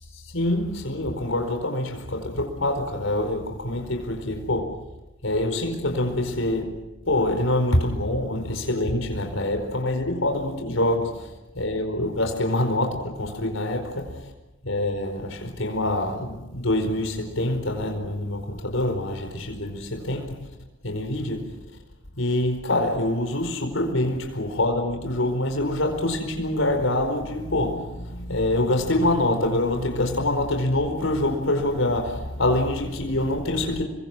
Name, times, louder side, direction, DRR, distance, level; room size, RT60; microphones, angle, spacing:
voice 1, 0.1-4.9 5.2-14.3 14.6-20.5 20.8-21.6 22.2-33.8, left 1 dB, 80° left, 4.7 m, -25 dB
29.5 x 24.0 x 6.2 m
head